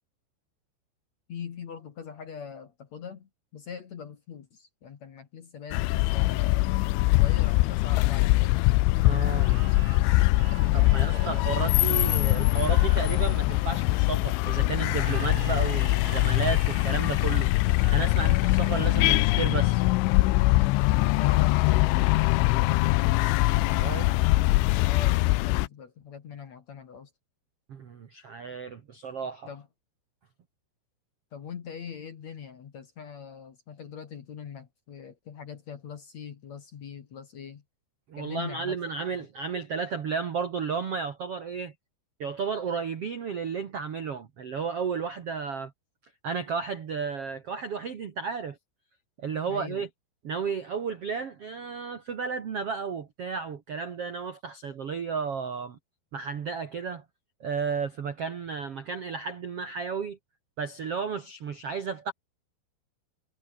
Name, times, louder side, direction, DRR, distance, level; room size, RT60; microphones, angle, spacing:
voice 1, 1.3-6.6 7.1-8.6 9.1-10.0 10.6-11.3 11.9-12.2 21.1-23.0 24.8-27.1 29.5-29.7 31.3-37.6 38.2-38.8 49.4-49.8, left 7 dB, 50° left, 2.2 m, -42 dB
sound 1, 5.7-25.7, left 20 dB, 80° left, 3.1 m, -23 dB
voice 2, 9.0-9.5 10.7-17.5 17.9-19.9 23.6-24.1 27.7-29.5 38.1-41.7 42.2-45.7 46.2-48.6 49.2-49.9 50.2-55.8 56.1-57.0 57.4-60.2 60.6-62.1, right 5 dB, 90° right, 1.3 m, -33 dB
sound 2, 9.3-14.2 14.9-19.3, right 9 dB, 65° right, 5.1 m, -47 dB
omnidirectional pair, 5.6 m